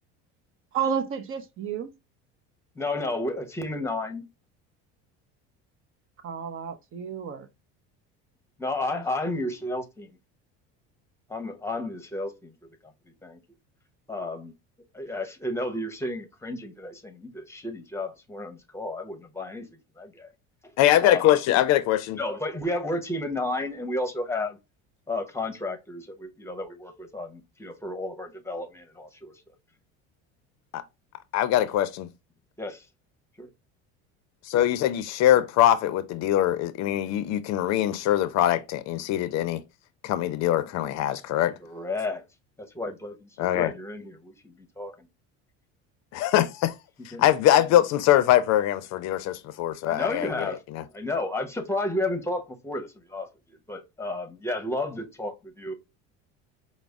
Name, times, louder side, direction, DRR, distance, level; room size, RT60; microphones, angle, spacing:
voice 1, 0.7-1.9 6.2-7.5 8.9-9.0, right 7 dB, 40° right, 0.6 m, -31 dB
voice 2, 2.8-4.3 8.6-10.1 11.3-12.5 13.2-13.4 14.1-14.5 14.9-19.7 20.0-20.3 21.0-21.2 22.1-24.6 25.1-29.4 32.6-32.8 33.4-33.5 41.6-42.2 42.6-45.1 47.1-47.2 49.8-50.6 50.9-55.7, left 2 dB, 10° left, 0.9 m, -32 dB
voice 3, 20.8-22.2 30.7-30.8 31.3-32.1 34.5-39.6 40.0-41.6 43.4-43.7 46.1-46.7 47.0-50.8, left 12 dB, 60° left, 0.5 m, -23 dB
5.0 x 2.0 x 3.4 m
supercardioid pair, 110°, 31 cm